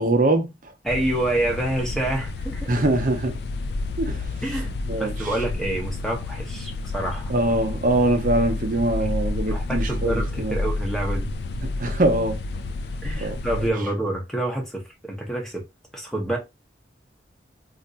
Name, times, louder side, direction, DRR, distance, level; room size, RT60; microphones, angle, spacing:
voice 1, 0.0-0.7 2.7-3.4 4.0-4.3 4.9-5.3 7.3-10.6 11.6-12.4 13.2-13.4, right 2 dB, 45° right, 0.6 m, -23 dB
voice 2, 0.8-2.7 4.4-7.3 9.4-11.3 13.0-15.6 15.9-16.4, right 1 dB, ahead, 0.8 m, -27 dB
sound 1, 0.9-13.7, left 2 dB, 60° left, 0.3 m, -30 dB
2.5 x 2.2 x 3.8 m
head